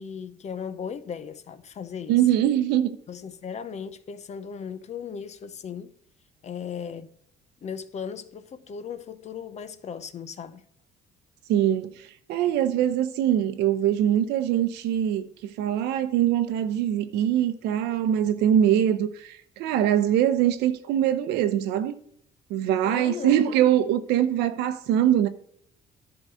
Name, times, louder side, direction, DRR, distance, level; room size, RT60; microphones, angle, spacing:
voice 1, 0.0-2.2 3.1-5.9 6.4-7.1 7.6-10.6 22.8-23.9, left 7 dB, 40° left, 0.8 m, -37 dB
voice 2, 2.1-3.0 11.5-22.0 22.5-25.3, right 11 dB, 90° right, 0.9 m, -23 dB
11.0 x 4.0 x 6.5 m
cardioid pair, 110°, 17 cm